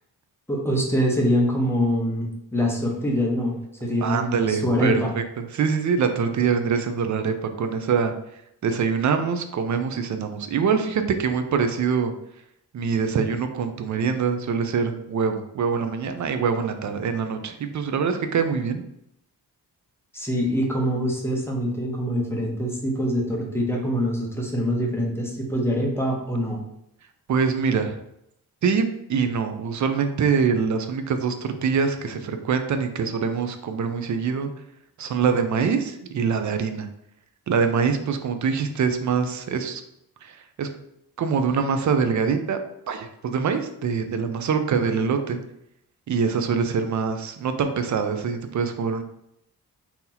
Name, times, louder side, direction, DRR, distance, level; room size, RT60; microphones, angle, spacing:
voice 1, 0.5-5.1 20.1-26.6, equal, 5° left, -1 dB, 0.7 m, -24 dB
voice 2, 4.0-5.2 5.5-8.1 8.6-12.1 12.7-18.8 27.3-28.0 28.6-31.3 31.6-34.5 35.0-36.9 37.5-39.8 40.2-40.7 41.2-42.6 42.9-45.4 46.1-49.0, right 6 dB, 50° right, 8 dB, 0.4 m, -24 dB
2.8 x 2.7 x 3.8 m, 0.78 s
wide cardioid pair, 120°, 37 cm